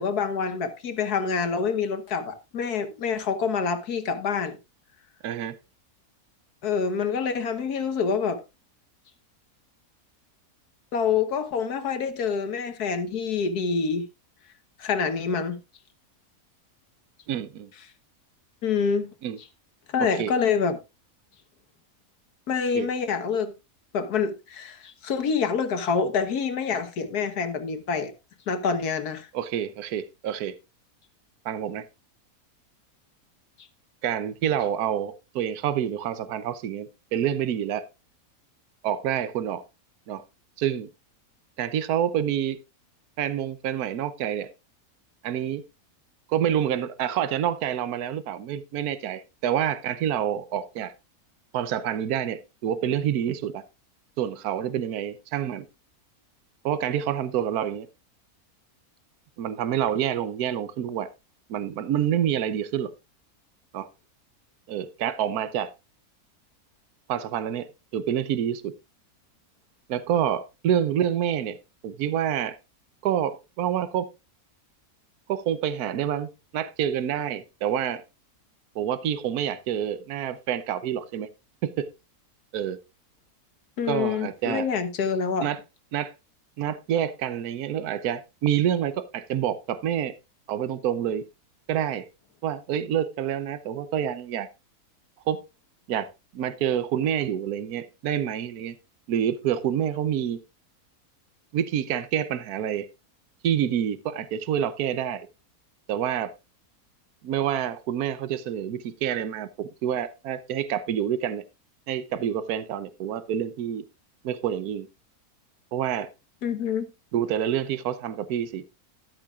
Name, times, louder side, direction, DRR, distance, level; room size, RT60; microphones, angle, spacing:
voice 1, 0.0-4.6 6.6-8.4 10.9-14.1 14.8-15.6 18.6-19.1 19.9-20.8 22.5-23.5 23.9-28.1 28.5-29.3 83.8-85.5 116.4-116.9, left 6 dB, 85° left, 1.7 m, -26 dB
voice 2, 5.2-5.6 17.3-17.7 19.2-19.4 20.0-20.3 22.7-22.9 29.3-30.5 31.4-31.9 34.0-37.9 38.8-39.6 40.1-40.2 40.6-40.9 41.6-42.6 43.2-44.5 45.2-45.6 46.3-50.9 51.5-53.6 54.2-55.7 56.6-57.9 59.4-61.1 61.5-62.9 63.7-63.9 64.7-65.7 67.1-68.7 69.9-71.6 71.8-72.6 73.0-74.1 75.3-78.0 78.7-81.3 81.6-81.9 82.5-82.8 83.9-84.7 85.4-85.6 85.9-86.1 86.6-90.1 90.5-91.3 91.7-92.1 92.4-94.5 95.3-95.4 95.9-98.7 99.1-100.4 101.5-102.9 103.4-105.3 105.9-106.3 107.2-111.4 111.9-113.8 114.2-114.9 115.7-116.1 117.1-118.6, right 9 dB, 75° right, 1.3 m, -27 dB
13.0 x 11.5 x 2.4 m
omnidirectional pair, 1.6 m